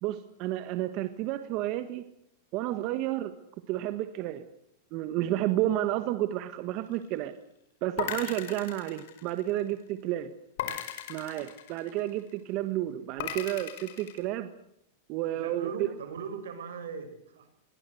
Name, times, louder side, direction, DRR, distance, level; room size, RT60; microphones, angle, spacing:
voice 1, 0.0-2.0 2.5-3.3 3.7-4.4 4.9-7.3 7.8-10.3 11.1-14.5 15.1-15.9, right 14 dB, 45° right, 11 dB, 1.5 m, -31 dB
sound 1, 8.0-9.7 10.6-12.2 13.2-14.2, left 10 dB, 65° left, 5.0 m, -37 dB
voice 2, 15.3-17.5, right 6 dB, 85° right, 8 dB, 6.3 m, -39 dB
22.0 x 18.5 x 7.9 m, 0.76 s
supercardioid pair, 140°, 0 cm